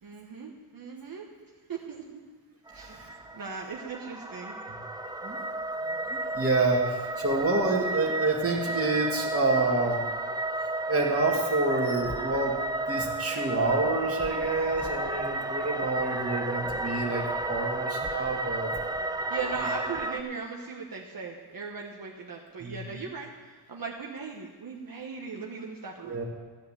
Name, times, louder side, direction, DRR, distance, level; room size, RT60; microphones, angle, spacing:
voice 1, 0.0-1.2 1.7-2.0 2.7-4.6 19.3-26.2, right 5 dB, 45° right, -1 dB, 1.3 m, -38 dB
sound 1, 2.7-20.2, right 2 dB, 10° right, 0.5 m, -32 dB
voice 2, 2.8-3.2 5.2-5.4 5.8-10.0 10.9-12.6 12.9-18.7 22.6-22.8 26.0-26.2, right 2 dB, 30° right, -2 dB, 2.4 m, -28 dB
15.0 x 5.7 x 8.9 m, 1.5 s
wide cardioid pair, 135°, 46 cm